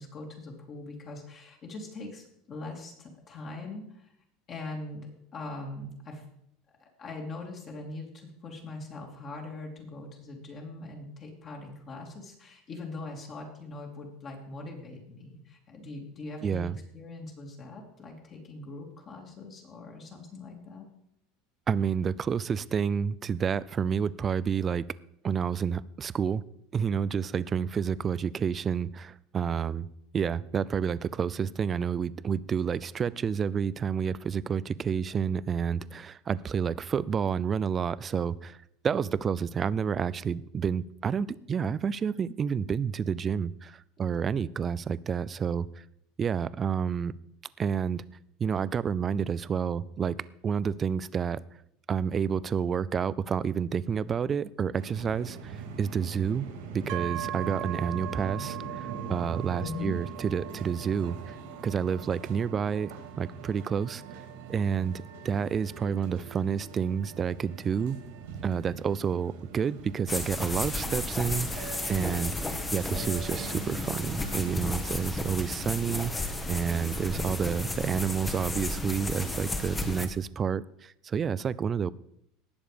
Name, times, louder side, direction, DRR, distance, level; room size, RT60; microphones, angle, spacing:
voice 1, 0.0-4.1 4.5-6.2 6.8-20.9 59.6-60.0, left 2 dB, 35° left, 0 dB, 2.8 m, -41 dB
voice 2, 16.4-16.8 21.7-24.9 25.2-26.4 26.7-29.9 30.1-38.6 38.8-45.8 46.2-47.1 47.6-48.0 48.4-50.2 50.4-51.4 51.9-56.5 56.7-61.4 61.6-64.0 64.5-68.0 68.4-72.4 72.7-81.9, right 7 dB, 25° right, 19 dB, 0.4 m, -29 dB
sound 1, 54.8-74.5, right 5 dB, 85° right, 3.5 m, -43 dB
sound 2, 56.9-70.6, right 13 dB, 60° right, 0.8 m, -43 dB
sound 3, 70.1-80.1, left 2 dB, 10° left, 1.4 m, -33 dB
18.5 x 7.0 x 5.1 m, 0.74 s
supercardioid pair, 140°, 0 cm